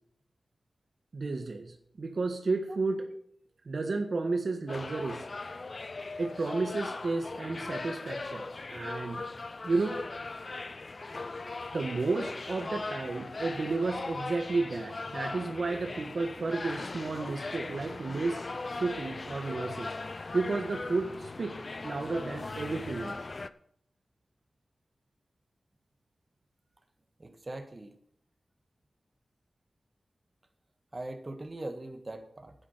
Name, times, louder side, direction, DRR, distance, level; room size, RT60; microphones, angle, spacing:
voice 1, 1.1-3.1 3.7-5.3 6.2-9.2 9.6-10.0 11.7-18.5 18.8-19.9 20.3-21.5 21.8-23.2, right 3 dB, 65° right, 5 dB, 1.5 m, -32 dB
sound 1, 4.7-23.5, left 3 dB, 50° left, 0.7 m, -39 dB
voice 2, 27.2-28.0 30.9-32.5, right 2 dB, 35° right, 7 dB, 1.8 m, -41 dB
10.5 x 10.0 x 5.7 m, 0.65 s
wide cardioid pair, 65°, 0 cm